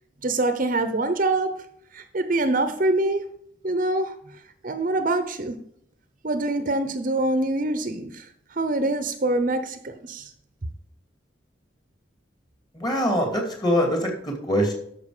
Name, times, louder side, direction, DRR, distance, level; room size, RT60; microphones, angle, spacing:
voice 1, 0.2-1.6 1.9-3.2 3.6-4.1 4.6-5.6 6.2-10.3, right 2 dB, 45° right, 0.8 m, -25 dB
voice 2, 12.7-14.7, equal, 25° left, 2.6 m, -23 dB
12.5 x 5.9 x 4.9 m
head